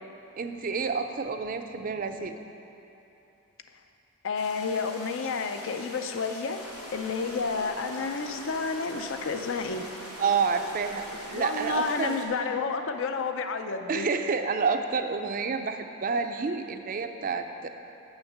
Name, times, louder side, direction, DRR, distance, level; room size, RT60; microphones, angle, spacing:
voice 1, 0.4-2.4 10.2-12.2 13.9-17.7, right 5 dB, 40° right, 7 dB, 0.4 m, -29 dB
voice 2, 4.2-6.6 6.9-9.8 11.3-14.1, left 4 dB, 55° left, 7 dB, 0.5 m, -30 dB
sound 1, 4.4-12.3, left 2 dB, 90° left, 1.2 m, -45 dB
sound 2, 6.6-12.0, right 3 dB, 85° right, 0.5 m, -44 dB
6.4 x 6.3 x 7.2 m, 2.9 s
head